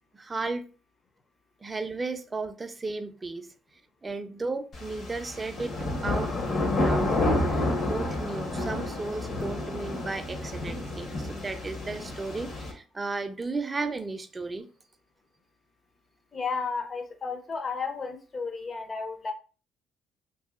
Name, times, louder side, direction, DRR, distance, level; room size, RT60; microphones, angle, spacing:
voice 1, 0.1-0.6 1.6-3.5 4.0-5.7 6.0-7.1 7.5-14.7, right 3 dB, 25° right, 0.4 m, -34 dB
sound 1, 4.7-12.7, left 2 dB, 55° left, 0.9 m, -30 dB
voice 2, 16.3-19.3, left 4 dB, 35° left, 0.6 m, -33 dB
2.7 x 2.7 x 2.3 m
cardioid pair, 85°, 0 cm